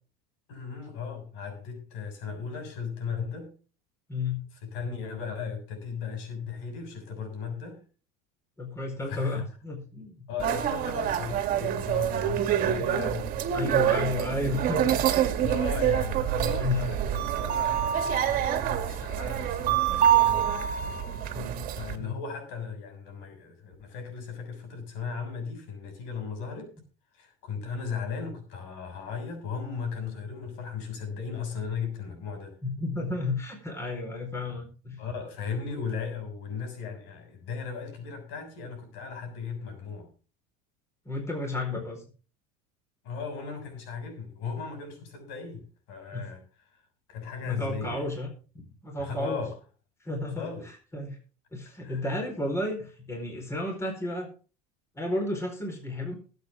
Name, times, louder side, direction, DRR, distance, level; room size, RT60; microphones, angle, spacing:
voice 1, 0.5-3.5 4.6-7.8 9.1-9.4 10.3-13.6 13.8-14.4 15.4-20.6 21.8-26.7 27.1-32.6 35.0-40.1 43.0-46.4 47.1-48.1 49.0-49.5 50.4-50.7 51.8-52.0, left 5 dB, 65° left, 6 dB, 6.7 m, -36 dB
voice 2, 4.1-4.5 8.6-10.2 13.5-15.2 16.6-16.8 21.3-21.7 22.0-22.2 32.6-35.0 41.0-42.0 46.1-46.2 47.4-48.3 48.8-49.5 50.0-51.2 51.5-54.3 54.9-56.1, left 2 dB, 15° left, 3 dB, 4.4 m, -32 dB
sound 1, 10.4-22.0, right 10 dB, 45° right, 2.1 m, -26 dB
20.5 x 8.3 x 3.6 m, 0.37 s
supercardioid pair, 125°, 20 cm